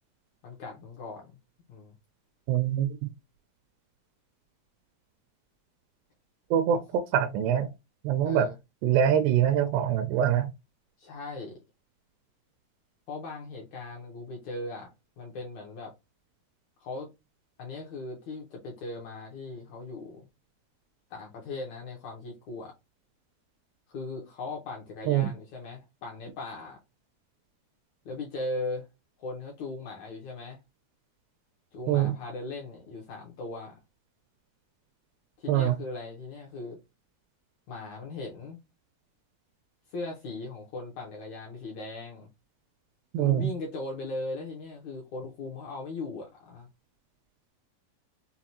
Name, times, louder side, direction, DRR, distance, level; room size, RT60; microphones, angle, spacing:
voice 1, 0.4-1.4 1.7-1.9 6.7-6.8 8.2-8.6 11.0-11.6 13.1-15.9 16.8-17.1 17.6-20.3 21.1-22.7 23.9-26.8 28.0-28.9 29.2-30.6 31.7-33.8 35.4-36.8 37.7-38.6 39.9-42.3 43.1-46.7, left 2 dB, 75° left, 1.7 m, -38 dB
voice 2, 2.5-2.9 6.5-7.7 8.0-8.5 8.8-10.5 25.1-25.3 31.9-32.2 35.5-35.8 43.1-43.5, right 10 dB, 85° right, 2.7 m, -24 dB
6.8 x 2.3 x 2.9 m
omnidirectional pair, 4.7 m